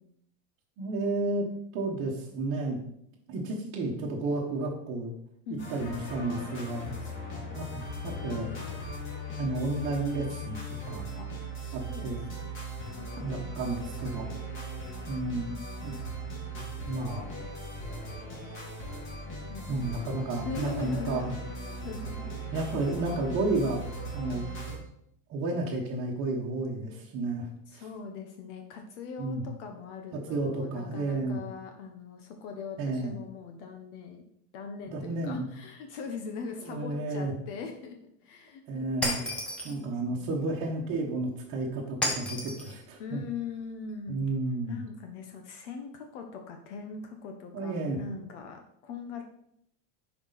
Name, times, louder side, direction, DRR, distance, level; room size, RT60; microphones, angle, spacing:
voice 1, 0.8-2.8 3.3-5.1 5.7-7.0 7.5-7.7 8.0-8.5 9.4-10.6 10.9-11.1 11.7-12.2 13.1-14.3 15.1-15.6 15.8-15.9 16.8-17.3 19.7-21.4 22.5-23.8 24.1-24.4 25.3-27.8 29.2-29.4 30.1-31.4 32.8-33.1 34.9-35.5 36.7-37.3 38.7-39.3 39.6-43.2 44.1-44.8 47.5-48.0, right 2 dB, 35° right, -3 dB, 1.2 m, -32 dB
sound 1, 5.6-24.8, equal, 25° left, 3.0 m, -38 dB
voice 2, 7.0-7.5 11.2-11.3 11.6-12.1 13.0-13.4 19.3-22.8 27.7-34.2 34.5-39.0 39.7-40.6 43.0-44.2 44.7-49.2, left 5 dB, 55° left, 4 dB, 1.1 m, -41 dB
Shatter, 39.0-39.8 42.0-42.7, equal, 5° left, 0.3 m, -31 dB
11.0 x 4.8 x 4.0 m, 0.73 s
supercardioid pair, 170°, 42 cm